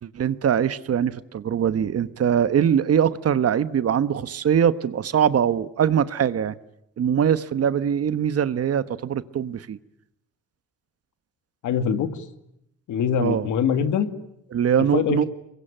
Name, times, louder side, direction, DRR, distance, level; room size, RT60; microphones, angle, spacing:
voice 1, 0.0-6.6 7.0-9.8 13.2-13.5 14.5-15.2, right 8 dB, 55° right, 1.2 m, -22 dB
voice 2, 11.6-12.2 12.9-14.1 14.9-15.3, left 7 dB, 80° left, 2.3 m, -23 dB
26.0 x 22.0 x 9.0 m
cardioid pair, 90°, 30 cm